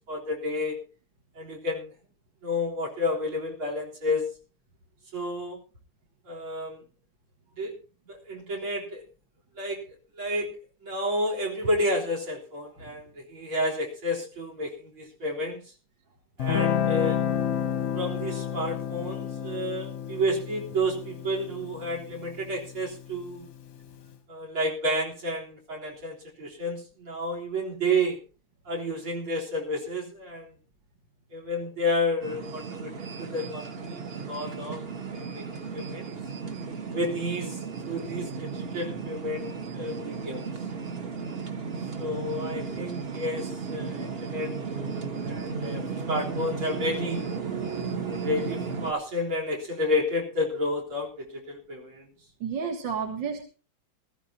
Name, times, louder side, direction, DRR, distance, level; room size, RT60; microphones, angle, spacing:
voice 1, 0.1-0.8 1.4-1.9 2.4-4.2 5.1-5.6 6.3-6.8 7.6-7.7 8.1-9.0 9.6-9.8 10.1-10.5 10.8-15.6 16.4-17.2 17.9-23.5 24.3-28.2 28.7-30.5 31.3-34.8 35.1-35.4 35.7-36.1 36.9-37.6 37.9-40.5 42.0-44.5 45.3-47.2 48.1-52.1, left 1 dB, 85° right, 1 dB, 4.5 m, -30 dB
Guitar, 16.4-23.5, left 9 dB, 55° left, 1.0 m, -30 dB
sound 1, 32.2-48.9, right 5 dB, 40° right, 1.0 m, -35 dB
voice 2, 52.4-53.4, right 6 dB, 65° right, 3 dB, 2.3 m, -32 dB
19.5 x 14.5 x 2.8 m, 0.35 s
omnidirectional pair, 2.3 m